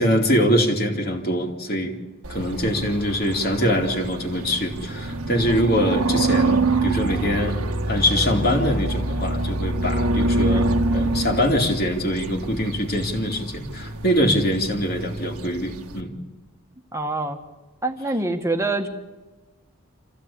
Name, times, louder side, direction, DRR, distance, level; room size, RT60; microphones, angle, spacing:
voice 1, 0.0-2.0 2.3-7.6 7.9-16.1, equal, 45° left, 0 dB, 2.8 m, -23 dB
sound 1, 2.2-16.0, right 2 dB, 85° right, 1.6 m, -26 dB
voice 2, 16.9-17.4 17.8-18.9, right 2 dB, 15° right, 5 dB, 1.7 m, -25 dB
27.0 x 15.5 x 8.6 m, 1.2 s
head